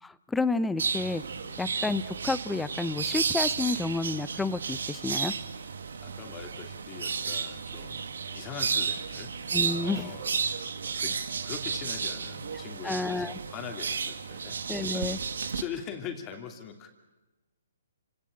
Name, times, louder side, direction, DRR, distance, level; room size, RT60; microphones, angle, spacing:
voice 1, 0.0-1.2 1.6-5.3 9.5-10.2 12.8-13.4 14.7-15.2, left 3 dB, 5° left, 15 dB, 0.8 m, -30 dB
sound 1, 0.8-15.6, right 5 dB, 75° right, 1.8 m, -33 dB
voice 2, 6.0-9.3 9.8-10.4 11.0-14.6 14.9-15.1 15.5-16.9, left 7 dB, 25° left, 5 dB, 2.8 m, -42 dB
29.0 x 18.0 x 8.8 m, 1.1 s
hypercardioid pair, 140°, 0 cm